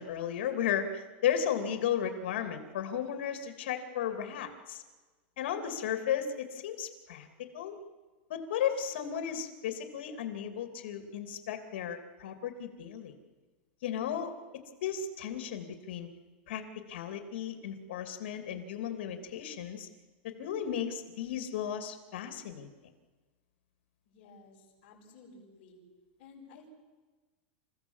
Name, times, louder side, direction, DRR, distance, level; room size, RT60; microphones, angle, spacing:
voice 1, 0.0-4.8 5.4-7.8 8.3-13.1 13.8-14.3 14.8-16.1 16.5-16.6 16.9-19.9 20.2-22.7, left 9 dB, 75° left, 6 dB, 2.9 m, -34 dB
voice 2, 24.1-25.8 26.2-26.7, left 3 dB, 50° left, -8 dB, 7.0 m, -55 dB
28.5 x 15.5 x 7.3 m, 1.3 s
supercardioid pair, 165°, 6 cm